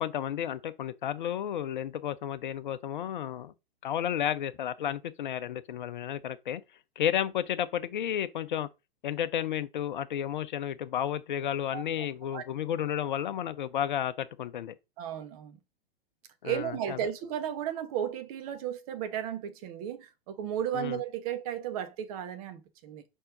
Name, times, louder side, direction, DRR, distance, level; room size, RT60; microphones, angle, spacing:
voice 1, 0.0-3.5 3.8-6.6 7.0-8.7 9.0-14.7 16.4-17.0 20.7-21.0, left 10 dB, 55° left, 0.6 m, -32 dB
voice 2, 11.7-12.1 12.3-12.4 15.0-15.6 16.4-23.0, right 10 dB, 40° right, 1.1 m, -34 dB
5.4 x 4.4 x 5.2 m
figure-of-eight pair, 105°, 30 cm